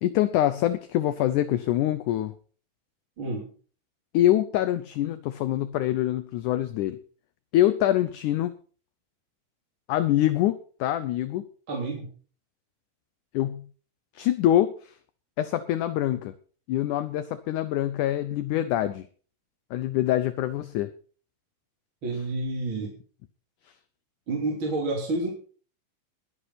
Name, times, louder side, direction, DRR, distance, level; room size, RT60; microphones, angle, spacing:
voice 1, 0.0-2.3 4.1-7.0 7.5-8.5 9.9-11.4 13.3-13.7 14.2-14.9 15.4-16.3 16.7-19.1 19.7-20.9, left 13 dB, 75° left, 13 dB, 2.0 m, -25 dB
voice 2, 3.2-3.5 11.7-12.1 22.0-22.9 24.3-25.3, right 2 dB, 35° right, -1 dB, 3.7 m, -29 dB
21.0 x 10.0 x 4.1 m, 0.41 s
omnidirectional pair, 4.2 m